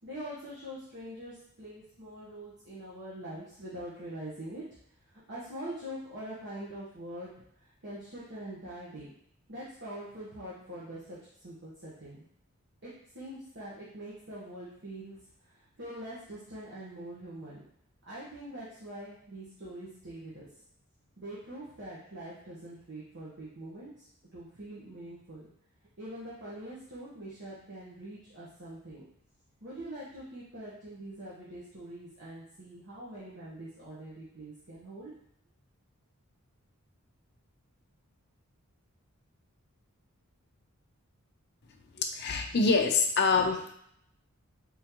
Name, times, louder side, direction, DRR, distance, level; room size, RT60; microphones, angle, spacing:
voice 1, 0.0-4.6 5.1-7.3 7.6-9.1 9.5-11.2 11.4-12.2 12.8-15.2 15.5-17.6 18.1-20.5 21.2-25.5 26.0-29.0 29.6-35.1, right 1 dB, 55° right, -9 dB, 1.2 m, -44 dB
voice 2, 41.9-43.7, left 4 dB, 50° left, 4 dB, 0.6 m, -26 dB
4.2 x 3.8 x 3.0 m, 0.70 s
head